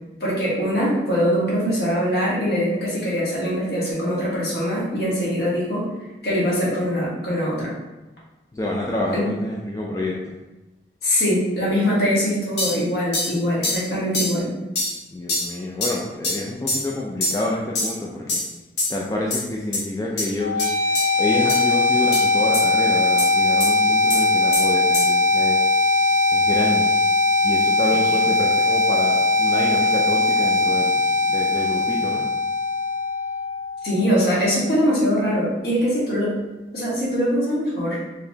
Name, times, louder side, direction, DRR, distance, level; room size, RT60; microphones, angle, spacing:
voice 1, 0.2-5.9 6.2-7.7 9.1-9.2 11.0-14.5 28.1-28.2 33.8-36.3 36.7-38.0, equal, 65° left, -6 dB, 1.3 m, -22 dB
voice 2, 8.5-10.3 15.1-18.4 18.9-20.9 21.2-25.6 26.3-27.0 27.4-32.2, left 1 dB, 20° left, -3 dB, 0.3 m, -28 dB
sound 1, 12.6-12.8 13.1-13.3 13.6-13.8 14.1-14.3 14.7-14.9 15.3-15.5 15.8-15.9 16.2-16.4 16.7-16.9 17.2-17.4 17.7-17.9 18.3-18.5 18.8-19.0 19.3-19.4 19.7-19.8 20.2-20.3 20.6-20.7 20.9-21.0 21.5-21.6 22.1-22.2 22.5-22.6 23.2-23.3 23.6-23.7 24.1-24.2 24.5-24.6 24.9-25.1, left 2 dB, 90° left, 1.1 m, -24 dB
sound 2, 20.4-34.4, left 2 dB, 55° right, 0.5 m, -20 dB
3.9 x 2.9 x 2.7 m, 1.1 s
head